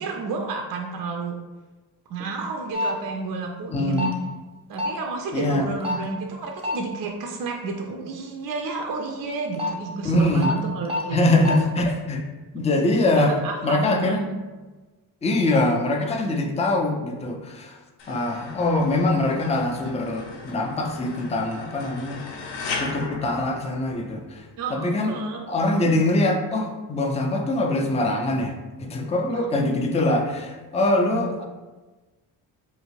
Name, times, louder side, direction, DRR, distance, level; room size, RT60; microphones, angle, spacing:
voice 1, 0.0-1.4 2.1-4.1 4.7-11.3 11.6-11.7 13.1-14.3 24.6-25.4 29.3-29.5 30.8-31.3, right 4 dB, 45° right, 2 dB, 0.5 m, -30 dB
sound 1, 2.7-2.9 3.9-4.1 4.8-5.0 5.8-6.0 6.6-6.8 9.3-9.7 10.4-10.5 10.8-11.0 11.4-11.5, left 2 dB, 10° right, 0.7 m, -25 dB
voice 2, 3.7-4.1 5.3-5.7 10.0-10.5 11.1-12.2 12.5-14.2 15.2-17.8 18.1-22.4 22.8-24.4 24.7-25.1 25.5-31.5, left 2 dB, 15° left, 3 dB, 0.4 m, -23 dB
sound 2, 18.0-24.3, left 4 dB, 60° left, 0.6 m, -37 dB
2.6 x 2.5 x 3.0 m, 1.2 s
supercardioid pair, 55°, 47 cm